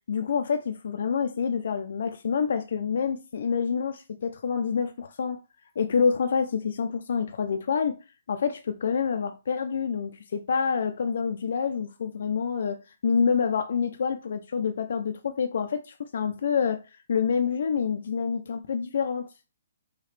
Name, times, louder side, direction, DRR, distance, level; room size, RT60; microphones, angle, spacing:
voice 1, 0.1-5.4 5.8-8.0 8.3-16.8 17.1-19.3, left 6 dB, 50° left, 0.4 m, -27 dB
4.8 x 2.8 x 3.2 m
hypercardioid pair, 180°, 0 cm